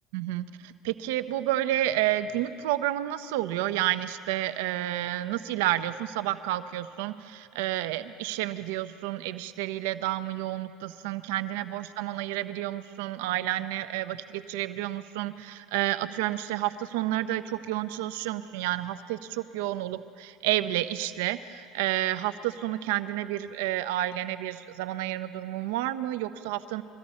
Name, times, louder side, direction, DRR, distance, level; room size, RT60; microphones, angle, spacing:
voice 1, 0.1-26.8, right 14 dB, 80° right, 12 dB, 0.5 m, -30 dB
22.5 x 13.5 x 4.2 m, 2.3 s
hypercardioid pair, 80°, 0 cm